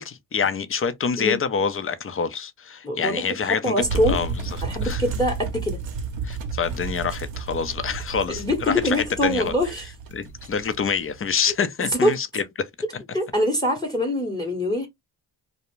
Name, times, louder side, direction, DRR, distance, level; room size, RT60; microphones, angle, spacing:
voice 1, 0.0-4.3 4.8-5.0 6.2-9.5 10.1-13.0, left 6 dB, 30° left, 0.5 m, -26 dB
voice 2, 2.8-4.2 4.6-5.8 8.3-9.9 11.8-12.1 13.1-14.9, left 1 dB, 10° left, 0.9 m, -24 dB
sound 1, 3.8-11.4, right 4 dB, 75° right, 0.7 m, -32 dB
2.4 x 2.1 x 3.0 m
cardioid pair, 50°, 46 cm